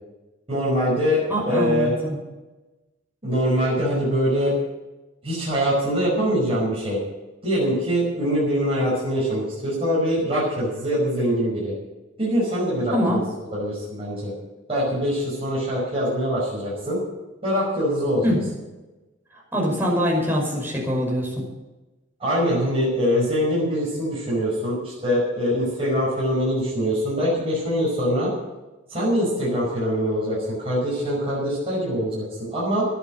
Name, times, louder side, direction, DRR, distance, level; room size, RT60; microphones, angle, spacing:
voice 1, 0.5-1.9 3.2-4.5 5.2-7.0 7.4-11.7 12.2-13.2 13.5-14.3 14.7-17.0 17.4-18.3 22.2-28.3 28.9-32.9, equal, 30° right, -7 dB, 5.6 m, -23 dB
voice 2, 1.3-2.2 12.9-13.2 18.2-18.4 19.5-21.4, equal, 10° right, -2 dB, 5.3 m, -23 dB
12.5 x 11.0 x 7.7 m, 1.1 s
head